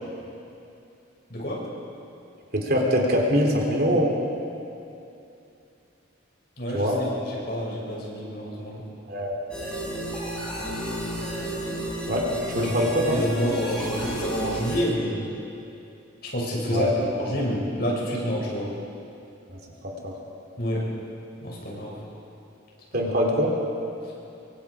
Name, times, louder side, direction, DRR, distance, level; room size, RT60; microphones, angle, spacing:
voice 1, 1.3-1.7 6.6-8.8 12.5-15.4 16.2-18.7 20.6-20.9 21.4-22.0 22.9-23.1 24.0-24.1, equal, 50° left, -4 dB, 6.8 m, -28 dB
voice 2, 2.5-4.1 6.7-7.0 9.1-9.3 12.1-13.2 16.7-16.9 19.5-20.1 22.9-23.5, equal, 50° right, 0 dB, 3.4 m, -23 dB
sound 1, 9.5-14.8, right 1 dB, 5° left, 7.0 m, -32 dB
26.5 x 24.0 x 5.0 m, 2.7 s
head